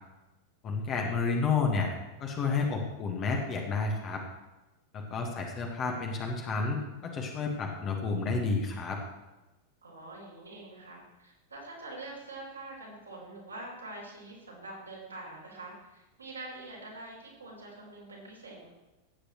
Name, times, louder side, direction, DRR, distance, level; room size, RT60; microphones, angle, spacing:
voice 1, 0.6-1.9 2.2-4.2 4.9-9.0, left 4 dB, 30° left, 1 dB, 1.6 m, -30 dB
voice 2, 9.8-18.7, right 2 dB, 80° right, -4 dB, 3.8 m, -45 dB
15.5 x 8.5 x 3.2 m, 1.1 s
figure-of-eight pair, 90°, 0 cm